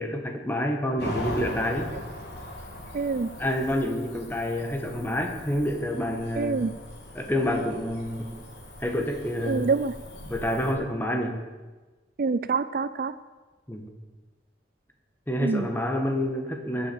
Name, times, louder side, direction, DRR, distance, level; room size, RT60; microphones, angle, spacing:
voice 1, 0.0-1.9 3.4-6.6 7.1-8.4 8.8-9.7 10.3-11.4 13.7-13.9 15.3-16.9, left 1 dB, 10° left, 3 dB, 1.8 m, -28 dB
Cricket / Motor vehicle (road), 1.0-10.7, left 1 dB, 65° left, 3.7 m, -40 dB
voice 2, 2.9-3.3 6.4-6.7 9.5-9.9 12.2-13.1 15.4-15.7, right 4 dB, 55° right, 14 dB, 0.5 m, -26 dB
21.5 x 7.7 x 7.1 m, 1.3 s
head